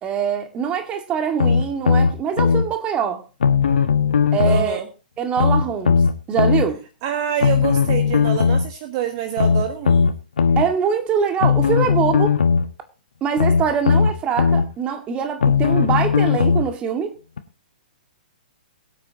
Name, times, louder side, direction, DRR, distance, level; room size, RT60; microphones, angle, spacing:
voice 1, 0.0-3.2 4.3-4.8 5.2-6.0 6.3-6.8 10.6-12.3 13.2-17.1, right 7 dB, 20° right, 1.9 m, -23 dB
sound 1, 1.4-2.6 3.4-4.7 5.4-6.6 7.4-8.7 9.4-10.6 11.4-12.7 13.4-14.6 15.4-16.7 17.4-17.5, left 6 dB, 65° left, 1.4 m, -17 dB
voice 2, 4.4-4.9 7.0-10.2, right 10 dB, 35° right, 1.5 m, -26 dB
22.5 x 8.4 x 2.9 m
figure-of-eight pair, 120°, 5 cm